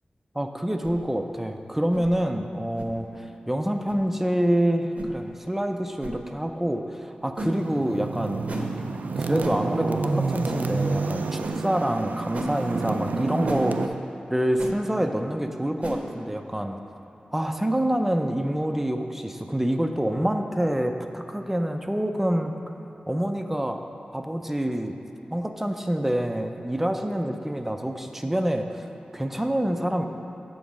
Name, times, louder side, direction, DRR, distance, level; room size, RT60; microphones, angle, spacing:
voice 1, 0.4-8.5 9.2-14.0 14.3-16.8 17.3-22.5 23.1-23.8 24.1-25.0 25.3-28.9 29.1-30.1, right 1 dB, 10° right, 5 dB, 0.4 m, -26 dB
sound 1, 0.8-1.0 1.9-2.1 2.8-2.9 3.8-4.0 4.9-5.1 6.0-6.2 7.4-7.6 8.5-8.7 9.4-9.6 10.4-10.6 11.4-11.6 12.3-12.5 13.4-13.6 14.6-14.7 15.8-16.0, right 1 dB, 55° right, 0.7 m, -33 dB
sound 2, 7.6-13.9, right 4 dB, 90° right, 0.3 m, -29 dB
7.3 x 3.9 x 6.1 m, 2.9 s
wide cardioid pair, 105°, 3 cm